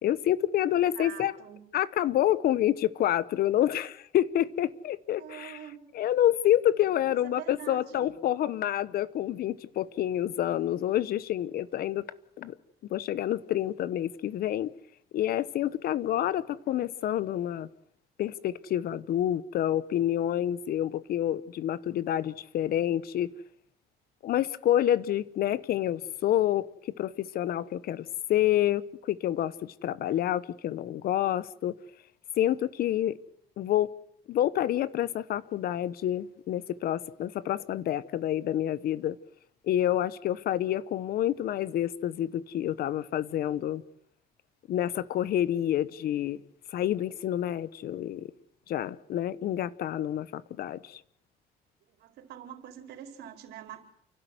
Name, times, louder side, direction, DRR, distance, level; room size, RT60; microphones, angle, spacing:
voice 1, 0.0-1.3 1.7-5.6 5.9-12.0 12.4-12.5 12.9-14.7 15.1-17.7 18.2-23.3 24.2-31.8 32.4-33.2 33.6-33.9 34.3-39.2 39.6-43.8 44.7-46.4 46.7-48.3 48.7-51.0, left 12 dB, 65° left, 1.0 m, -28 dB
voice 2, 0.7-1.6 5.1-5.8 7.1-8.1 51.9-53.8, right 10 dB, 80° right, 4.7 m, -45 dB
29.5 x 12.5 x 9.4 m
cardioid pair, 110°, 17 cm